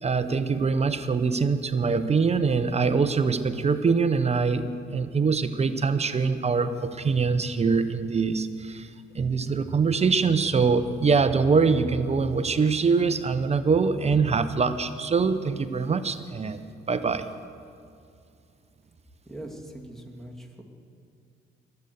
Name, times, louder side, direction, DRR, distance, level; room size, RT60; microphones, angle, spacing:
voice 1, 0.0-8.9 9.1-16.6 16.9-17.3, right 5 dB, 30° right, 11 dB, 0.7 m, -24 dB
voice 2, 19.3-20.6, right 1 dB, ahead, 1 dB, 2.3 m, -41 dB
21.5 x 8.0 x 7.0 m, 2.5 s
cardioid pair, 90°, 20 cm